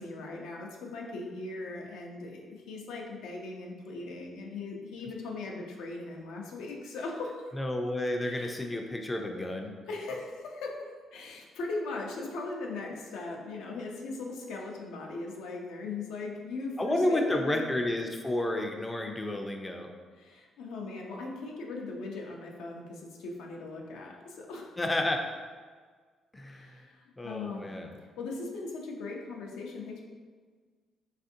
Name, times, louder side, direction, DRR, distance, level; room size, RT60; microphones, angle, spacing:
voice 1, 0.0-7.5 8.2-8.5 9.9-17.7 20.2-24.8 26.5-27.7 28.2-30.0, left 3 dB, 90° left, 0 dB, 0.5 m, -39 dB
voice 2, 7.5-9.7 16.8-19.9 24.8-25.2 26.3-26.8 27.2-27.9, left 1 dB, 15° left, 3 dB, 0.3 m, -31 dB
3.4 x 2.4 x 2.6 m, 1.5 s
cardioid pair, 90°, 0 cm